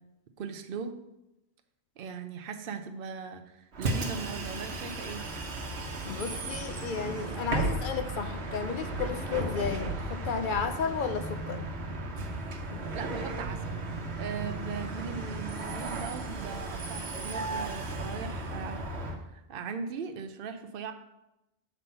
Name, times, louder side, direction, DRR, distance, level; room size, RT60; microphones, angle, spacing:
voice 1, 0.4-1.0 2.0-5.2 12.9-13.8 14.2-18.9 19.2-20.9, right 6 dB, 65° right, 7 dB, 0.8 m, -39 dB
Bus, 3.7-19.2, right 2 dB, 90° right, 1.2 m, -35 dB
voice 2, 6.0-11.7 12.7-13.0, left 6 dB, 60° left, 8 dB, 0.7 m, -33 dB
7.0 x 4.2 x 5.5 m, 0.89 s
omnidirectional pair, 1.1 m